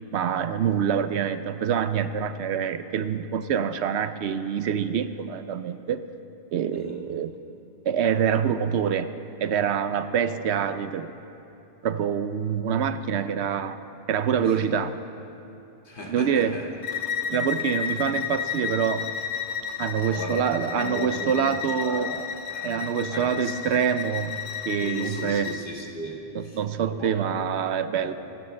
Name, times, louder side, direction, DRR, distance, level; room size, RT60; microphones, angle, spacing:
voice 1, 0.1-6.0 6.5-7.3 7.8-9.1 9.4-11.1 11.8-13.8 14.1-14.9 16.1-16.6 17.3-19.1 19.8-22.1 22.6-24.3 24.7-25.5 26.3-28.1, right 8 dB, 75° right, 11 dB, 0.9 m, -26 dB
voice 2, 10.3-10.7 14.4-14.7 15.8-16.7 19.7-22.2 22.5-23.6 24.8-26.6 26.9-27.5 28.0-28.1, left 1 dB, 45° left, -3 dB, 2.2 m, -37 dB
Bowed string instrument, 16.8-25.6, left 7 dB, 70° left, 1.0 m, -32 dB
26.0 x 12.5 x 3.3 m, 2.8 s
omnidirectional pair, 1.2 m